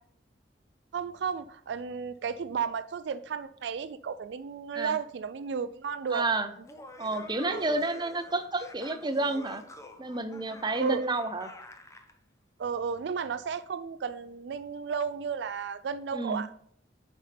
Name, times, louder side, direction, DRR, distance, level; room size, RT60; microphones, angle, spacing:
voice 1, 0.9-6.3 7.5-7.8 10.7-11.0 12.6-16.5, right 6 dB, 70° right, 12 dB, 0.4 m, -33 dB
voice 2, 6.1-6.5 7.0-9.6 10.0-11.5 16.1-16.4, right 2 dB, 25° right, 9 dB, 0.6 m, -30 dB
Laughter, 6.5-12.1, left 1 dB, 15° left, 0.7 m, -48 dB
10.5 x 5.3 x 3.4 m, 0.66 s
head